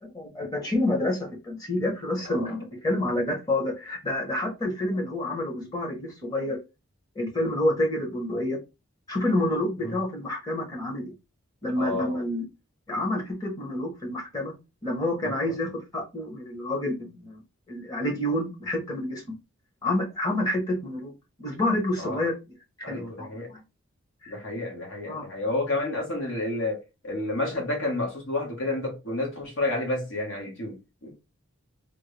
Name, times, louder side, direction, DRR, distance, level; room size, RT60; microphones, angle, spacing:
voice 1, 0.0-6.6 7.1-8.6 9.1-11.1 11.6-12.4 12.9-14.5 14.8-17.4 17.7-19.3 19.8-21.1 21.4-22.3 22.8-23.6 24.2-24.3 25.1-25.2, left 1 dB, 15° left, 1.1 m, -28 dB
voice 2, 11.7-12.2 22.0-22.2 22.8-23.5 24.3-31.1, left 2 dB, 60° left, 1.5 m, -30 dB
3.6 x 2.3 x 3.3 m
head